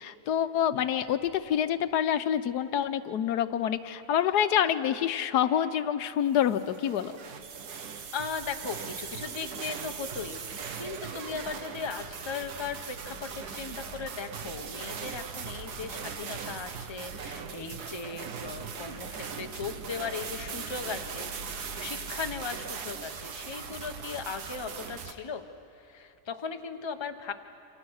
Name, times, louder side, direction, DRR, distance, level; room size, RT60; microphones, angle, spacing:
voice 1, 0.0-7.1, left 9 dB, 85° left, 11 dB, 1.3 m, -27 dB
sound 1, 6.4-25.1, right 6 dB, 80° right, 1.7 m, -39 dB
voice 2, 8.1-10.4 10.7-21.3 21.8-25.5 25.9-27.3, left 5 dB, 20° left, 6 dB, 0.8 m, -37 dB
28.0 x 26.0 x 6.4 m, 2.7 s
omnidirectional pair, 1.7 m